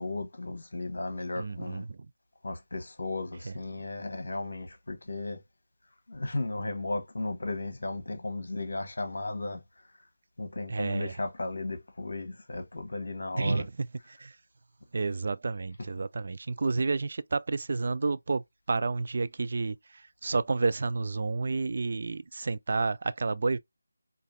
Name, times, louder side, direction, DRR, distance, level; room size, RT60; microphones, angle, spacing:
voice 1, 0.0-1.8 2.4-5.4 6.1-9.6 10.4-13.6, left 2 dB, 60° left, 1.1 m, -35 dB
voice 2, 1.4-2.1 3.4-3.5 10.7-11.2 13.3-14.4 14.9-23.6, right 3 dB, 45° right, 0.3 m, -30 dB
4.9 x 2.5 x 2.5 m
figure-of-eight pair, 160°, 0 cm